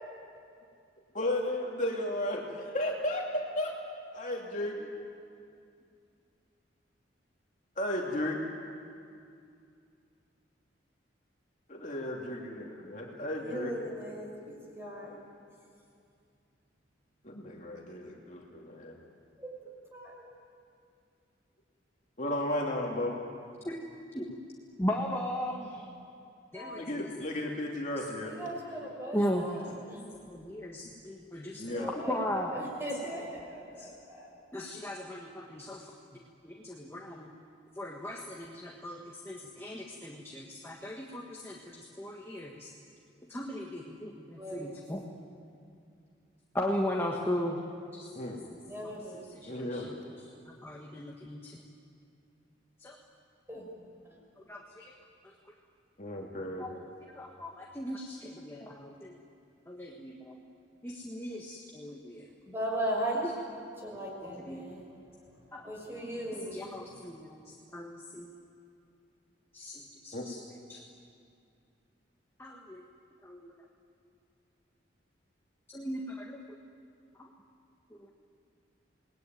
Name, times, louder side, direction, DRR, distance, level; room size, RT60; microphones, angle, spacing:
voice 1, 1.1-3.7 4.1-4.9 7.8-8.4 11.7-13.7 17.2-19.0 22.2-23.2 26.7-28.3 31.6-31.9 48.1-48.4 49.5-49.9 56.0-56.7 70.1-70.3, left 1 dB, 40° left, -1 dB, 2.7 m, -34 dB
voice 2, 13.4-15.2 19.4-20.2 26.5-26.9 28.2-30.0 31.7-34.3 44.3-44.8 48.6-49.3 53.5-54.1 62.4-63.2 63.8-64.8 65.4-66.6, right 1 dB, 10° right, -1 dB, 6.2 m, -38 dB
voice 3, 24.8-25.9 26.5-26.8 28.0-28.1 29.1-29.5 30.3-32.6 33.0-33.2 33.8-33.9 34.5-35.9 36.4-37.3 37.7-42.7 43.3-45.0 46.5-47.6 47.9-48.9 49.3-51.6 52.8-53.0 54.4-54.9 55.2-55.3 56.6-56.7 57.0-59.2 59.7-60.4 60.8-62.3 63.2-63.3 64.2-64.7 65.5-65.6 66.5-68.3 69.5-70.4 70.7-70.8 72.4-72.8 73.2-73.5 75.7-76.6 77.1-77.3 77.9-78.1, equal, 15° left, -1 dB, 1.7 m, -37 dB
29.5 x 20.5 x 9.4 m, 2.4 s
head